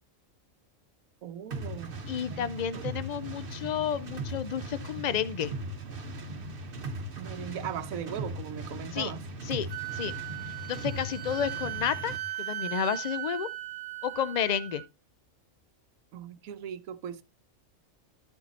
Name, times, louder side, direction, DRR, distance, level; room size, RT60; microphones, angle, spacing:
voice 1, 1.2-1.9 2.3-2.5 7.2-9.2 16.1-17.2, right 9 dB, 85° right, 1.2 m, -38 dB
sound 1, 1.5-12.3, right 2 dB, 45° right, 1.1 m, -39 dB
voice 2, 2.1-5.5 8.9-9.1 9.4-9.7 9.9-10.1 10.7-13.5 14.0-14.8, left 8 dB, 70° left, 0.4 m, -31 dB
Wind instrument woodwind instrument, 9.7-14.9, right 16 dB, 70° right, 1.1 m, -38 dB
13.0 x 4.6 x 4.1 m
omnidirectional pair, 1.4 m